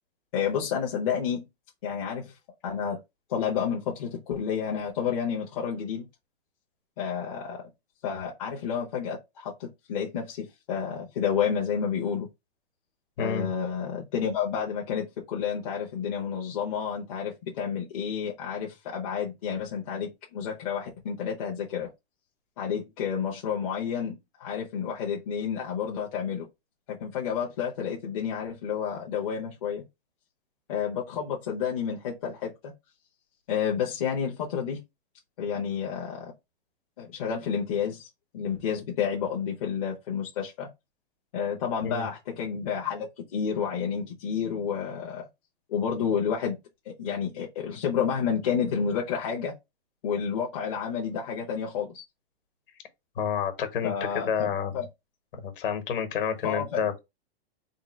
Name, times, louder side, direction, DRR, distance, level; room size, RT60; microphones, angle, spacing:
voice 1, 0.3-1.5 1.8-2.4 2.6-3.0 3.3-6.1 7.0-7.6 8.0-12.3 13.2-21.9 22.6-26.5 26.9-29.8 30.7-32.7 33.5-34.8 35.4-36.3 37.0-38.1 38.3-40.7 41.3-45.3 45.7-46.6 46.8-49.5 50.0-52.0 53.8-54.9 56.4-56.8, left 7 dB, 35° left, 0.7 m, -30 dB
voice 2, 13.2-13.5 41.8-42.1 53.2-54.7 55.3-57.0, left 7 dB, 55° left, 1.3 m, -29 dB
3.7 x 2.3 x 4.2 m
hypercardioid pair, 170°, 32 cm